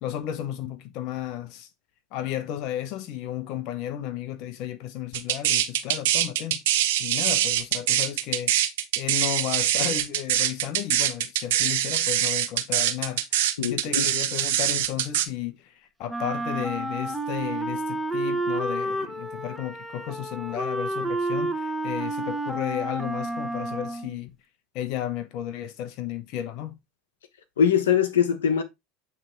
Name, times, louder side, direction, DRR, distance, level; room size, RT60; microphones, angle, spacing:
voice 1, 0.0-1.7 2.1-6.6 7.0-8.5 9.0-13.2 13.7-24.3 24.7-26.8, left 11 dB, 60° left, 1.0 m, -33 dB
sound 1, 5.1-15.3, right 11 dB, 75° right, 1.2 m, -24 dB
voice 2, 13.6-14.1 27.6-28.6, left 8 dB, 85° left, 1.1 m, -22 dB
Wind instrument woodwind instrument, 16.1-24.2, right 2 dB, 5° right, 1.2 m, -30 dB
8.6 x 3.5 x 4.5 m
hypercardioid pair, 85°, 0 cm